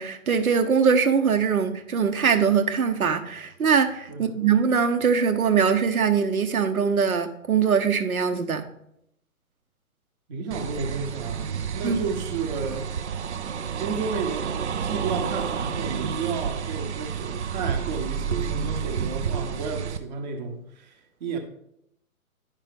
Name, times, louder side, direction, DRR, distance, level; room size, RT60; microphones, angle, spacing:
voice 1, 0.0-8.7 11.8-12.0, right 6 dB, 75° right, 1.0 m, -22 dB
voice 2, 4.1-4.4 10.3-12.9 13.8-14.5 14.8-21.4, right 5 dB, 30° right, 1.0 m, -32 dB
sound 1, 10.5-20.0, right 7 dB, 55° right, 0.5 m, -30 dB
9.9 x 5.4 x 3.4 m
figure-of-eight pair, 135°, 43 cm